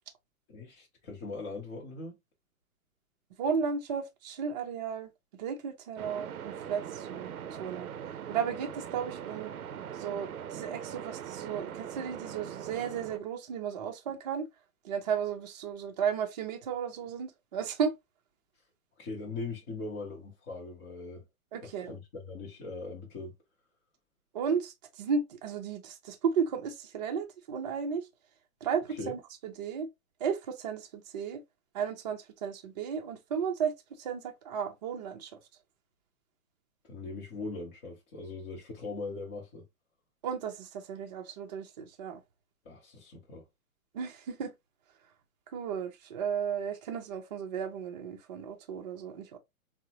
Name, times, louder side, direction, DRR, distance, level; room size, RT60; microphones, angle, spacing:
voice 1, 0.5-2.1 19.0-21.2 21.6-23.3 28.9-29.1 36.9-39.7 42.7-43.4, left 3 dB, 25° left, 0.7 m, -40 dB
voice 2, 3.4-5.1 5.4-7.9 8.3-9.5 10.0-14.5 14.8-17.9 21.5-21.9 24.3-28.0 28.6-29.9 30.2-31.4 31.7-33.7 34.0-35.4 40.2-42.2 43.9-44.5 45.5-49.4, right 7 dB, 30° right, 0.5 m, -34 dB
sound 1, 6.0-13.2, right 9 dB, 85° right, 0.6 m, -41 dB
3.7 x 2.1 x 2.7 m
hypercardioid pair, 130°, 43 cm